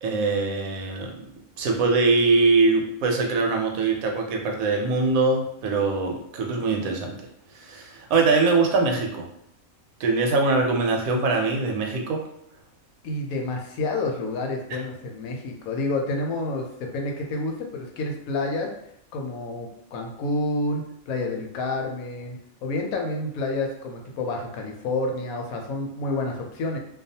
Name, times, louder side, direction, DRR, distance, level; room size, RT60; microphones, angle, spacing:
voice 1, 0.0-1.2 1.6-7.2 7.5-9.3 10.0-12.2 14.7-14.8, right 3 dB, 80° right, 2 dB, 1.0 m, -22 dB
voice 2, 13.0-18.7 19.1-26.8, left 2 dB, 80° left, 2 dB, 1.0 m, -29 dB
2.3 x 2.3 x 2.7 m, 0.76 s
omnidirectional pair, 1.5 m